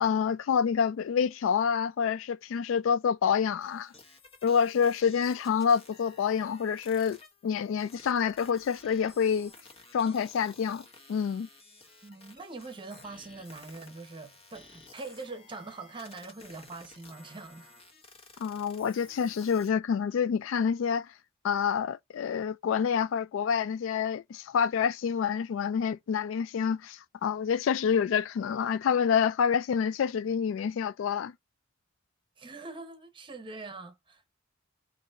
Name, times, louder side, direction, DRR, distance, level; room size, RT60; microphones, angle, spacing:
voice 1, 0.0-3.9 4.4-7.2 7.4-9.5 9.9-11.5 18.4-21.1 21.4-31.3, left 7 dB, 70° left, 0.3 m, -27 dB
sound 1, 3.6-19.7, left 3 dB, 30° left, 1.0 m, -54 dB
voice 2, 12.0-17.7 18.3-18.5 32.4-34.3, right 3 dB, 25° right, 0.9 m, -43 dB
3.8 x 2.7 x 4.2 m
head